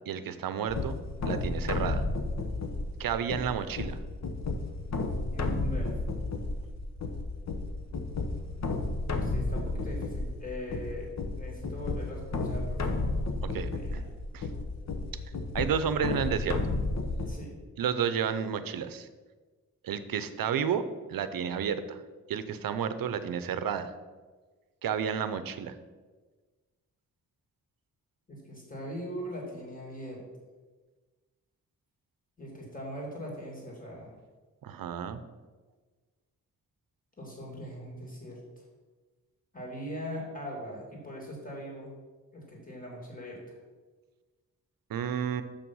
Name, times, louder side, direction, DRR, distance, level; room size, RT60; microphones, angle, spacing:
voice 1, 0.1-0.9 1.2-2.0 3.0-4.0 13.5-14.0 14.3-14.5 15.5-16.7 17.8-19.1 19.8-20.8 21.1-22.0 22.3-23.9 24.8-25.8 34.6-35.2 44.9-45.4, right 8 dB, 80° right, 12 dB, 0.7 m, -31 dB
sound 1, 0.7-17.3, left 2 dB, 50° left, 1.0 m, -32 dB
voice 2, 5.3-5.9 8.9-11.1 11.3-13.2 13.6-14.0 17.3-17.6 28.3-30.2 32.4-34.2 37.2-38.4 39.5-41.9 42.3-43.6, equal, 25° left, -3 dB, 2.7 m, -41 dB
6.6 x 5.9 x 5.5 m, 1.4 s
cardioid pair, 90°, 34 cm